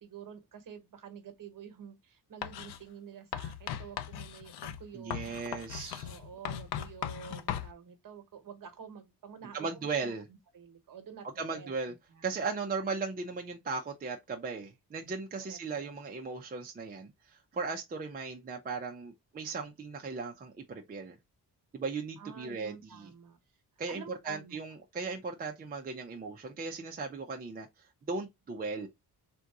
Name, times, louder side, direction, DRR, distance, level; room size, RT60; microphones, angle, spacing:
voice 1, 0.0-5.3 6.0-12.4 15.4-15.9 22.2-23.4 23.9-24.6, right 7 dB, 50° right, 1.1 m, -49 dB
Writing, 2.4-2.8 3.3-7.7, left 10 dB, 70° left, 0.6 m, -38 dB
voice 2, 4.9-6.1 9.5-10.3 11.4-11.9 12.2-21.2 21.7-23.1 23.8-28.9, right 4 dB, 25° right, 0.5 m, -37 dB
3.7 x 2.5 x 4.6 m
wide cardioid pair, 160°, 41 cm